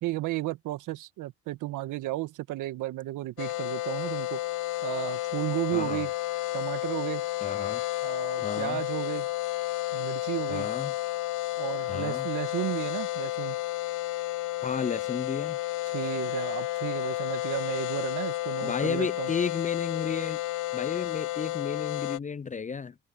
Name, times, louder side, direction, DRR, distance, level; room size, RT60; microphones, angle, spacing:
voice 1, 0.0-4.4 4.8-6.1 6.5-7.3 8.0-9.3 9.9-10.7 11.6-13.6 15.9-19.3, right 17 dB, 75° right, 1.7 m, -33 dB
sound 1, 3.4-22.2, left 17 dB, 75° left, 0.9 m, -31 dB
voice 2, 5.7-6.0 7.4-7.8 8.4-8.8 10.5-10.9 11.9-12.3 14.6-15.6 18.6-20.4 20.7-22.9, left 5 dB, 25° left, 0.5 m, -33 dB
supercardioid pair, 60°, 31 cm